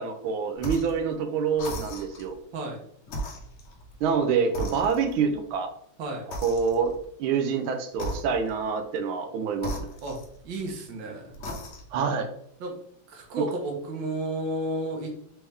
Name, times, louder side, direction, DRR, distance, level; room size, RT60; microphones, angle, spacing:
voice 1, 0.0-2.4 4.0-5.7 6.4-6.9 7.2-9.9 11.9-12.3 13.4-13.5, right 6 dB, 90° right, 7 dB, 1.5 m, -26 dB
sound 1, 0.6-1.0 1.5-2.3 3.0-4.2 4.5-5.3 6.3-7.0 7.9-8.7 9.6-10.7 11.3-12.0, equal, 70° left, 0.6 m, -37 dB
voice 2, 10.4-11.3 12.6-12.8 13.1-15.2, right 1 dB, 70° right, 1 dB, 1.6 m, -32 dB
4.2 x 3.5 x 3.4 m, 0.68 s
omnidirectional pair, 2.2 m